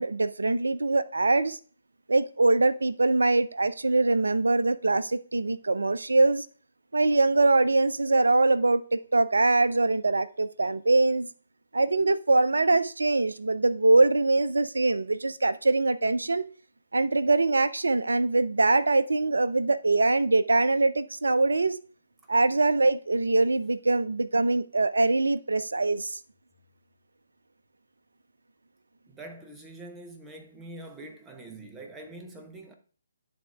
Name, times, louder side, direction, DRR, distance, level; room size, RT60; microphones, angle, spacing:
voice 1, 0.0-1.6 2.1-6.5 6.9-11.3 11.7-16.5 16.9-21.8 22.3-26.2, right 2 dB, 70° right, 0.4 m, -23 dB
voice 2, 29.1-32.7, right 2 dB, 10° right, 0.8 m, -44 dB
9.8 x 3.5 x 3.4 m
figure-of-eight pair, 140°, 0 cm